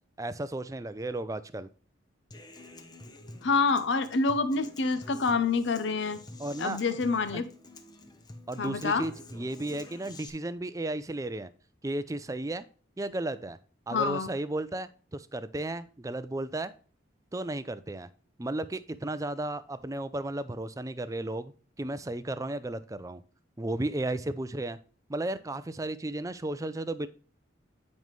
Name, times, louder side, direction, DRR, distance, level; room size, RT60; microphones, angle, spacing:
voice 1, 0.2-1.7 6.4-6.8 8.5-11.5 11.8-12.7 13.0-13.6 13.9-16.7 17.3-18.1 18.4-21.5 21.8-23.2 23.6-24.8 25.1-27.1, right 1 dB, 15° right, 14 dB, 0.4 m, -34 dB
Human voice / Acoustic guitar, 2.3-10.3, left 2 dB, 20° left, 0.8 m, -48 dB
voice 2, 3.4-6.2 6.6-7.5 8.6-9.1 13.9-14.3, left 4 dB, 65° left, 11 dB, 0.6 m, -27 dB
9.2 x 5.3 x 3.1 m, 0.39 s
head